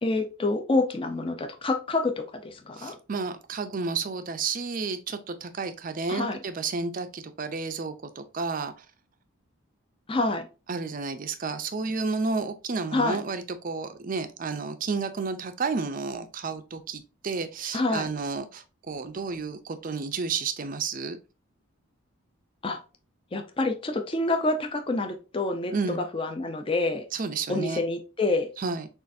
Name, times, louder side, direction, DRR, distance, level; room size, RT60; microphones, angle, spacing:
voice 1, 0.0-3.0 6.1-6.4 10.1-10.5 12.9-13.2 17.7-18.1 22.6-22.8 23.3-27.0 27.5-28.5, left 2 dB, 25° left, 5 dB, 0.5 m, -27 dB
voice 2, 2.8-8.8 10.7-21.2 25.7-26.0 27.1-27.8 28.6-28.9, right 4 dB, 40° right, 10 dB, 0.5 m, -31 dB
6.3 x 2.5 x 2.6 m, 0.31 s
head